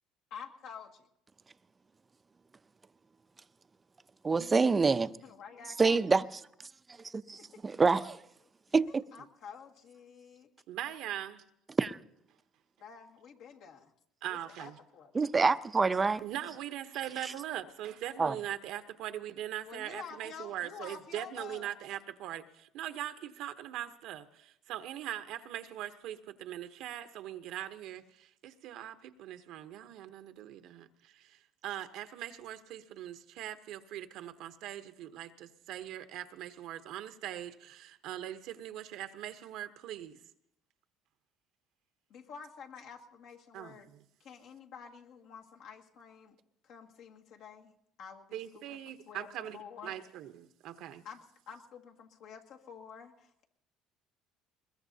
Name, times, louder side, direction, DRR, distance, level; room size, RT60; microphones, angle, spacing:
voice 1, 0.3-1.1 5.2-6.0 7.4-7.7 9.1-10.5 12.8-13.9 14.3-15.1 19.6-21.7 42.1-43.9 44.2-46.4 46.6-48.8 49.1-49.3 49.5-49.9 51.0-53.5, left 6 dB, 65° left, 1.9 m, -49 dB
voice 2, 4.2-5.1 5.8-6.2 7.1-8.2 8.7-9.0 11.8-12.0 15.1-16.2 17.2-17.3 18.2-18.3, right 4 dB, 20° right, 0.5 m, -26 dB
voice 3, 10.7-11.4 14.2-14.7 16.2-40.2 43.5-43.8 48.3-49.6 49.8-51.0, right 12 dB, 70° right, 0.9 m, -41 dB
21.5 x 21.0 x 2.8 m
cardioid pair, 110°, 0 cm